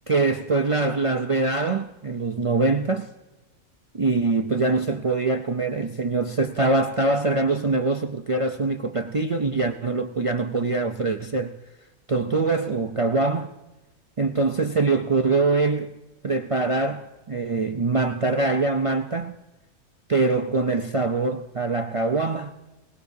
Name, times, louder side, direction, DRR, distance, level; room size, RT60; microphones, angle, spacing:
voice 1, 0.1-3.1 3.9-11.5 12.1-13.5 14.2-15.9 16.2-19.4 20.1-22.5, right 3 dB, 55° right, 0.3 m, -23 dB
21.5 x 19.0 x 2.7 m
omnidirectional pair, 1.4 m